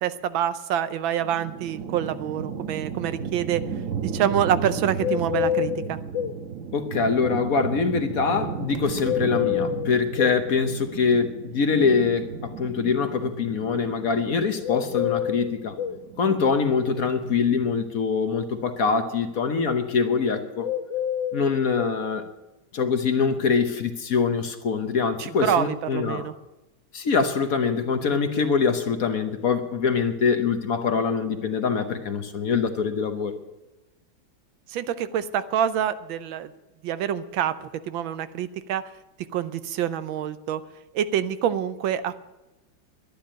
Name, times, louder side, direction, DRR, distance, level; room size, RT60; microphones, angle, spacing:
voice 1, 0.0-3.6 4.0-6.0 25.2-26.3 34.7-36.5 36.8-38.8 39.3-40.6 40.9-42.1, right 10 dB, 85° right, 13 dB, 1.5 m, -26 dB
sound 1, 1.2-17.8, right 6 dB, 50° right, 1.2 m, -35 dB
sound 2, 5.0-6.4 9.0-10.4 14.6-16.0 20.6-22.0, left 10 dB, 70° left, 1.3 m, -27 dB
voice 2, 6.7-15.8 16.2-20.7 21.3-22.2 22.7-26.3 26.9-33.3, left 5 dB, 50° left, 8 dB, 1.3 m, -24 dB
12.0 x 10.5 x 8.9 m, 1.0 s
omnidirectional pair, 2.1 m